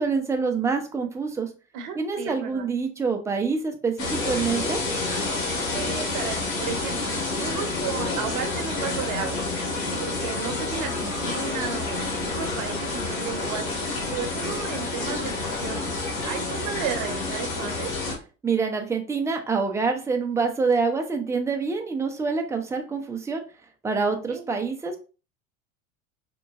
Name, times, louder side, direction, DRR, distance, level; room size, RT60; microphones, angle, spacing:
voice 1, 0.0-1.5 2.0-4.8 18.4-23.4 23.8-25.0, right 4 dB, 5° right, 4 dB, 0.5 m, -26 dB
voice 2, 1.7-2.7 5.7-9.4 10.0-13.7 14.1-15.9 16.2-17.9 24.1-24.4, right 7 dB, 50° right, 5 dB, 0.8 m, -34 dB
sound 1, 4.0-18.2, left 3 dB, 70° left, 1.2 m, -29 dB
3.7 x 2.2 x 2.4 m, 0.34 s
hypercardioid pair, 75°, 41 cm